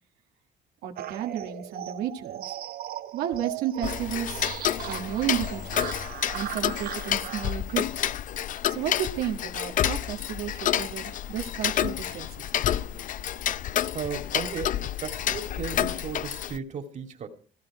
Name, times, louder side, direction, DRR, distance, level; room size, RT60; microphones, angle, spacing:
voice 1, 0.8-2.5 3.1-4.5 4.9-5.9 6.3-8.1 8.7-12.9, right 10 dB, 90° right, 3 dB, 1.6 m, -33 dB
sound 1, 1.0-7.5, right 12 dB, 60° right, 0.8 m, -38 dB
Tick-tock, 3.8-16.6, left 11 dB, 50° left, 0.6 m, -29 dB
voice 2, 13.9-17.3, right 6 dB, 45° right, 5 dB, 2.4 m, -35 dB
15.5 x 15.0 x 4.9 m, 0.43 s
cardioid pair, 110°, 17 cm